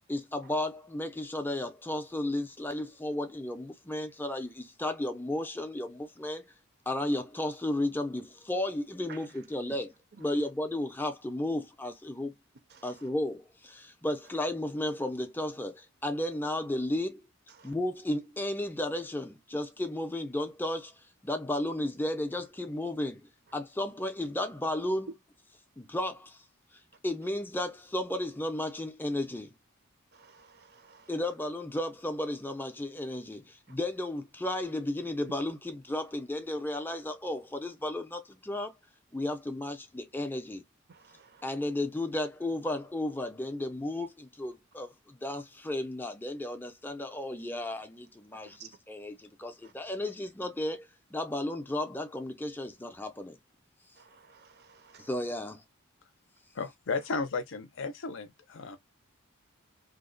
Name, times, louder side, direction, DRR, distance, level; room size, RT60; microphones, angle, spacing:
voice 1, 0.1-6.4 6.9-12.4 12.8-17.2 17.6-20.9 21.2-23.2 23.5-25.1 25.8-26.4 27.0-29.5 31.1-38.7 39.1-40.6 41.4-53.4 55.0-55.6, left 1 dB, 10° left, 0.5 m, -34 dB
voice 2, 30.1-31.1 40.9-41.4 48.5-48.7 54.0-55.1, right 6 dB, 45° right, 0.5 m, -54 dB
voice 3, 56.5-58.8, left 4 dB, 55° left, 0.6 m, -34 dB
2.8 x 2.1 x 3.8 m
head